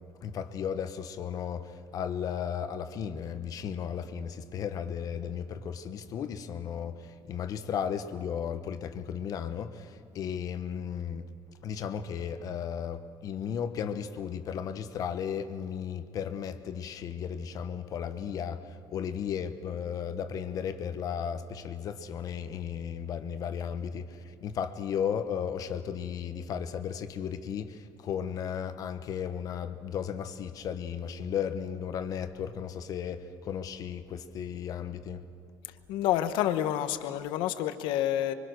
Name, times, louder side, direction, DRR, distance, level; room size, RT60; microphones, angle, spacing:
voice 1, 0.2-11.2 11.6-35.2, left 8 dB, 50° left, 1.1 m, -35 dB
voice 2, 35.9-38.3, left 12 dB, 85° left, 1.0 m, -28 dB
25.5 x 23.5 x 6.3 m
cardioid pair, 145°, 8 cm